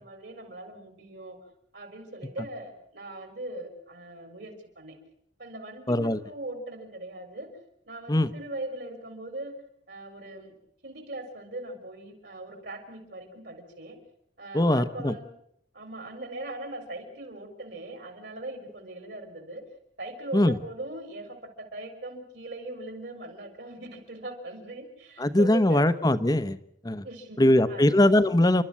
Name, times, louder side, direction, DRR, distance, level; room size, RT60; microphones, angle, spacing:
voice 1, 0.0-1.4 1.7-4.9 5.4-7.5 7.8-9.6 9.9-10.6 10.8-14.0 14.4-15.3 15.7-19.6 20.0-25.8 27.0-28.0, right 1 dB, 60° right, 6 dB, 4.3 m, -40 dB
voice 2, 5.9-6.2 8.1-8.3 14.5-15.1 20.3-20.6 25.2-26.6 26.8-27.0 27.4-28.6, left 1 dB, 20° left, 14 dB, 0.9 m, -21 dB
29.5 x 12.5 x 8.6 m, 0.72 s
head